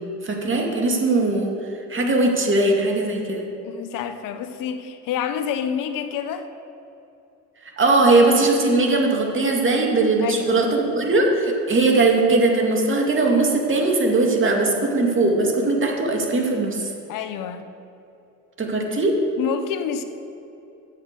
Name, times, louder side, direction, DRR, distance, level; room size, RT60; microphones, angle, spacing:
voice 1, 0.2-1.5 1.9-3.4 7.8-16.9 18.6-19.1, right 2 dB, 35° right, 1 dB, 2.4 m, -20 dB
voice 2, 3.6-6.5 10.2-10.6 17.1-17.7 18.9-19.0 19.4-20.0, left 8 dB, 70° left, 10 dB, 0.8 m, -28 dB
8.7 x 7.4 x 8.2 m, 2.8 s
supercardioid pair, 75°, 34 cm